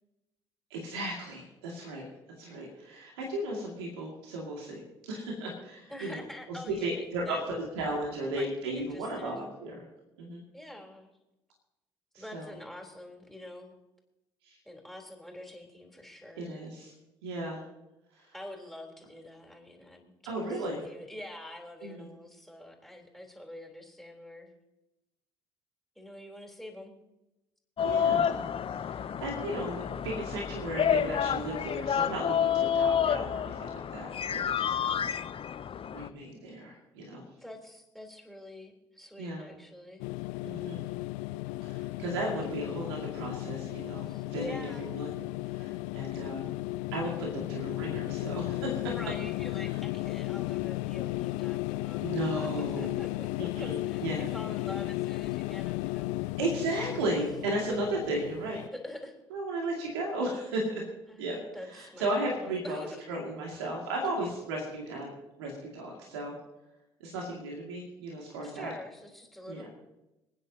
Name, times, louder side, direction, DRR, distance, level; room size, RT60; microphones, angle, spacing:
voice 1, 0.7-2.1 2.4-6.2 6.5-9.8 10.2-10.4 12.1-12.5 14.4-14.6 16.4-16.9 17.2-17.6 18.1-18.3 20.3-20.9 21.8-22.1 27.8-28.5 28.7-35.1 35.9-37.2 39.2-39.5 40.4-40.8 41.6-45.2 45.5-46.5 46.9-49.0 49.6-49.8 52.0-53.0 53.4-54.3 56.4-58.6 59.3-60.8 61.2-61.4 61.6-62.8 63.1-65.1 65.4-66.3 67.0-68.7 69.5-69.7, right 1 dB, 80° right, -1 dB, 2.5 m, -35 dB
voice 2, 5.9-7.4 8.3-9.4 10.5-11.1 12.1-13.7 14.7-16.6 18.3-24.5 26.0-27.0 37.4-40.1 44.0-44.9 48.8-52.1 52.4-52.5 52.8-56.2 58.7-59.2 61.1-63.0 68.4-69.7, left 1 dB, ahead, 1 dB, 3.8 m, -46 dB
sound 1, 27.8-36.1, left 8 dB, 45° left, 0.7 m, -29 dB
sound 2, 40.0-58.7, left 19 dB, 70° left, 0.4 m, -35 dB
27.5 x 9.8 x 2.9 m, 0.96 s
hypercardioid pair, 50°, 13 cm